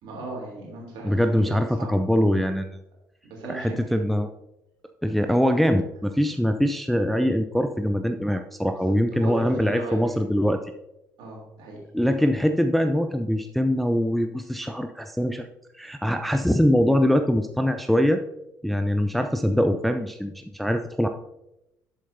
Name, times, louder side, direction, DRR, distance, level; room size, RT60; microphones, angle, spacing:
voice 1, 0.0-1.9 3.2-3.8 8.8-10.0 11.2-11.8, right 3 dB, 55° right, -2 dB, 3.1 m, -36 dB
voice 2, 1.0-2.7 3.5-4.3 5.0-10.6 11.9-15.5 15.7-18.2 18.6-21.1, equal, ahead, 6 dB, 0.4 m, -23 dB
11.0 x 7.4 x 2.7 m, 0.89 s
figure-of-eight pair, 55°, 10 cm